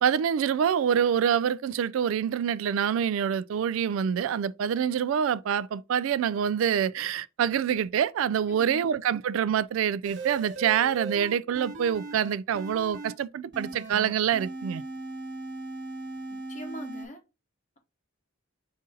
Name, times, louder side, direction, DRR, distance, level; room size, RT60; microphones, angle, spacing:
voice 1, 0.0-14.8, right 8 dB, 80° right, 0.3 m, -26 dB
voice 2, 8.5-8.9 16.3-17.2, left 1 dB, 35° left, 1.1 m, -42 dB
sound 1, 10.0-13.1 13.5-17.1, right 2 dB, 60° right, 1.4 m, -38 dB
5.2 x 3.8 x 2.7 m
head